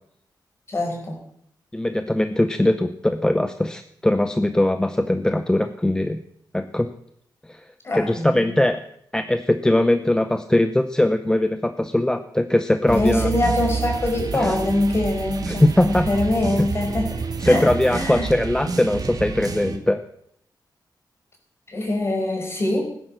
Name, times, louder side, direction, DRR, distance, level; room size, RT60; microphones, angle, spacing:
voice 1, 0.7-1.2 7.8-8.5 12.9-18.3 21.7-22.8, left 1 dB, 35° left, 2 dB, 4.9 m, -24 dB
voice 2, 1.7-6.2 6.5-6.9 7.5-7.6 7.9-8.8 9.1-13.3 14.3-14.5 15.5-16.1 17.4-20.0, left 1 dB, 10° left, 9 dB, 0.6 m, -21 dB
sound 1, 12.9-19.8, right 4 dB, 55° right, 1.9 m, -29 dB
18.5 x 10.5 x 6.6 m, 0.71 s
wide cardioid pair, 160°, 8 cm